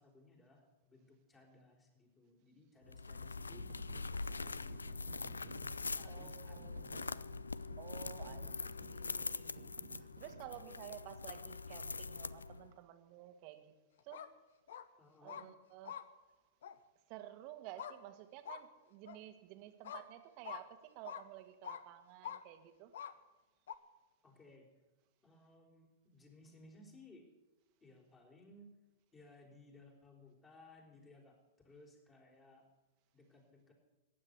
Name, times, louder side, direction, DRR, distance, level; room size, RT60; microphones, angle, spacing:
voice 1, 0.0-3.7 3.9-7.1 15.0-15.5 24.2-24.7 25.2-27.2 27.8-28.8 29.1-31.4 31.6-32.6 33.1-33.7, left 2 dB, 20° left, 0 dB, 4.6 m, -61 dB
sound 1, 2.9-12.7, left 4 dB, 85° left, 0.4 m, -43 dB
sound 2, 3.4-10.7, right 8 dB, 65° right, 1.1 m, -57 dB
voice 2, 6.0-7.3 7.8-13.7 14.0-14.2 15.2-16.0 17.1-22.9, right 13 dB, 45° right, 8 dB, 1.7 m, -53 dB
sound 3, 14.0-14.3 14.7-14.8 15.3-15.4 15.8-16.0 16.6-16.7 17.8-18.0 18.4-18.6 19.1-19.2 19.8-20.0 20.4-20.6 21.0-21.2 21.6-21.8 22.2-22.4 22.9-23.1 23.7-23.8, left 9 dB, 65° left, 0.9 m, -45 dB
15.0 x 9.6 x 8.4 m, 1.1 s
figure-of-eight pair, 100°, 0 cm